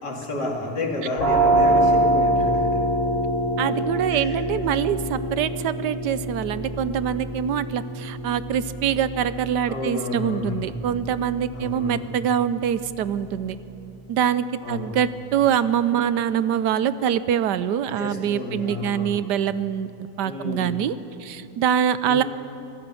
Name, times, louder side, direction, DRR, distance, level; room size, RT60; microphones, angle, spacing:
voice 1, 0.0-2.8 4.1-4.5 9.7-10.7 11.5-12.0 14.6-14.9 18.0-19.2 20.2-20.8 22.0-22.2, left 3 dB, 75° left, 0 dB, 3.3 m, -31 dB
sound 1, 1.2-12.7, right 1 dB, 45° left, 5.1 m, -25 dB
voice 2, 3.6-13.6 14.1-19.9 20.2-20.9 21.2-22.2, right 9 dB, 80° right, 14 dB, 1.3 m, -24 dB
25.0 x 15.5 x 7.0 m, 2.8 s
omnidirectional pair, 1.8 m